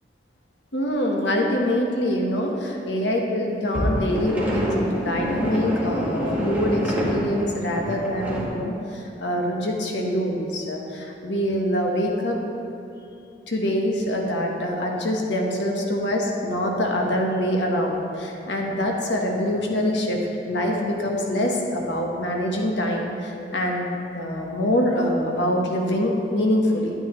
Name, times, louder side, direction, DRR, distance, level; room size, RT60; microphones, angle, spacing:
voice 1, 0.7-12.4 13.5-23.9 24.1-26.9, equal, 85° left, 0 dB, 1.2 m, -24 dB
sound 1, 3.7-8.5, equal, 10° right, 1.4 m, -27 dB
9.5 x 9.1 x 3.1 m, 2.8 s
head